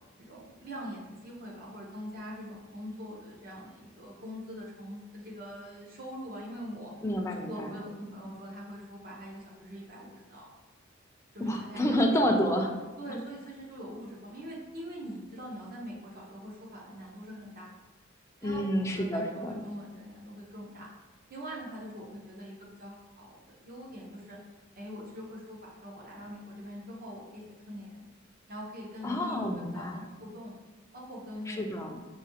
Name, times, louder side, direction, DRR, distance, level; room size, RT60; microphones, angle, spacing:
voice 1, 0.2-6.9 7.4-10.5 11.3-12.1 12.4-12.5 13.0-17.8 18.4-20.9 21.3-24.4 24.8-28.0 28.5-29.9 30.2-30.5 30.9-31.6, equal, 50° right, -3 dB, 0.9 m, -43 dB
voice 2, 7.0-7.8 11.4-12.7 18.4-19.5 29.0-30.0 31.5-32.0, equal, 15° left, 2 dB, 0.4 m, -29 dB
4.9 x 2.7 x 2.8 m, 1.2 s
head